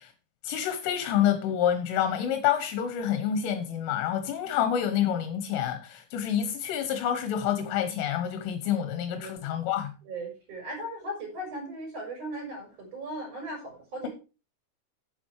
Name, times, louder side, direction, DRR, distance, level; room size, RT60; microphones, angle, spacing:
voice 1, 0.4-9.9, left 9 dB, 80° left, 3.5 m, -28 dB
voice 2, 4.4-4.7 9.2-9.5 10.0-14.1, right 1 dB, 30° right, 5.4 m, -38 dB
9.3 x 7.8 x 4.6 m
omnidirectional pair, 5.9 m